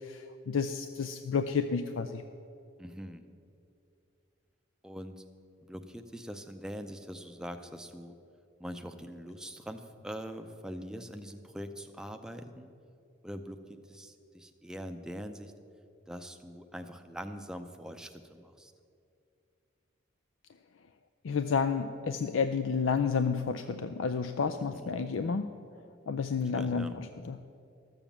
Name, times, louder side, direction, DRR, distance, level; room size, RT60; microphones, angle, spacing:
voice 1, 0.0-2.2 21.2-25.5 26.1-27.4, left 5 dB, 85° left, 9 dB, 0.4 m, -31 dB
voice 2, 2.8-3.3 4.8-5.2 5.6-8.1 8.6-12.7 13.2-15.5 16.1-18.7 24.7-24.9 26.5-26.9, equal, 5° right, 6 dB, 0.5 m, -43 dB
13.0 x 7.2 x 7.2 m, 2.5 s
head